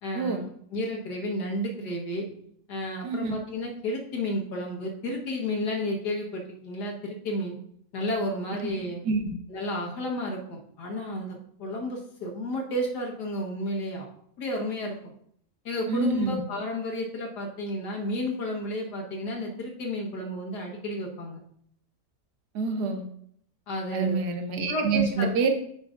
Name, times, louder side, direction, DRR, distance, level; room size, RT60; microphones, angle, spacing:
voice 1, 0.0-2.3 2.7-7.6 7.9-9.1 9.5-14.1 14.4-15.0 15.7-21.4 23.7-24.2 24.7-25.3, left 1 dB, 75° left, 0 dB, 1.9 m, -32 dB
voice 2, 3.0-3.3 9.0-9.2 15.9-16.4 22.5-23.0 23.9-25.5, right 4 dB, 75° right, 6 dB, 1.4 m, -26 dB
8.6 x 5.5 x 2.5 m, 0.66 s
omnidirectional pair, 1.8 m